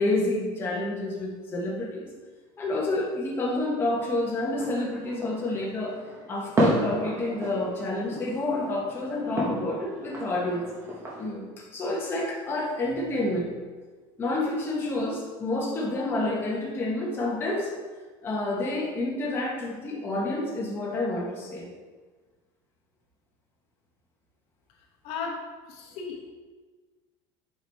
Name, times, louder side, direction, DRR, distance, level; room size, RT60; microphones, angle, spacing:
voice 1, 0.0-2.1 2.6-6.0 6.3-10.7 11.2-13.5 14.2-17.7 18.2-21.7, left 2 dB, 20° left, -3 dB, 1.1 m, -29 dB
sound 1, 3.9-11.3, right 1 dB, 25° right, 1.4 m, -32 dB
voice 2, 25.0-25.4 25.7-26.3, left 5 dB, 60° left, 0 dB, 1.1 m, -35 dB
7.3 x 4.7 x 3.4 m, 1.4 s
cardioid pair, 160°, 11 cm